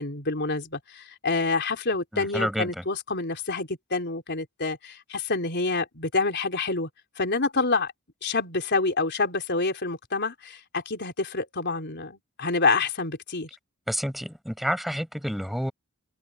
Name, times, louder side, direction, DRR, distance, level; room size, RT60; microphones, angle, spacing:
voice 1, 0.0-6.9 7.2-7.9 8.2-13.5, left 3 dB, 55° left, 4.1 m, -27 dB
voice 2, 2.1-2.8 13.9-15.7, equal, ahead, 6.4 m, -29 dB
head